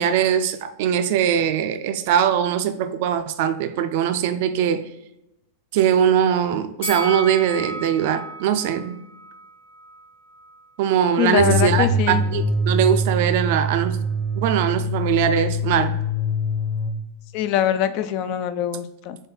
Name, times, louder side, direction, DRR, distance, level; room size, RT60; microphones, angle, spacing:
voice 1, 0.0-4.9 5.7-9.0 10.8-14.0 14.4-16.0, right 9 dB, 50° right, 10 dB, 0.4 m, -21 dB
Bell, 6.8-10.0 10.4-10.5, right 1 dB, 60° left, 1.0 m, -34 dB
voice 2, 11.2-12.2 17.3-19.2, left 10 dB, 45° left, 11 dB, 0.4 m, -23 dB
sound 1, 11.4-17.0, equal, ahead, 0.7 m, -24 dB
3.8 x 3.5 x 3.8 m, 0.87 s
figure-of-eight pair, 90°, 0 cm